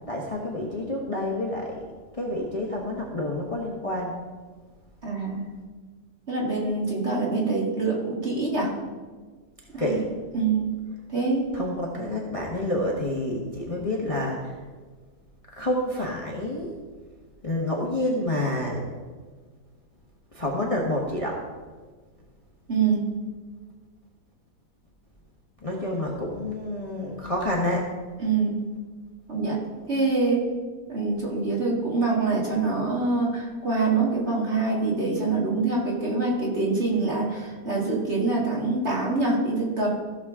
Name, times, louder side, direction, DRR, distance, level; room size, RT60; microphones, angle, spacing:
voice 1, 0.1-1.8 2.1-4.2 9.7-10.0 11.5-14.5 15.5-16.8 17.4-18.8 20.3-21.4 25.6-27.8, left 1 dB, 25° left, -2 dB, 1.1 m, -28 dB
voice 2, 5.0-5.5 6.3-8.7 9.7-10.0 10.3-10.7 11.1-11.6 22.7-23.1 28.2-28.6 29.3-29.6 29.9-30.5 30.9-40.0, right 3 dB, 40° right, -3 dB, 2.1 m, -25 dB
15.5 x 6.5 x 3.6 m, 1.4 s
omnidirectional pair, 1.9 m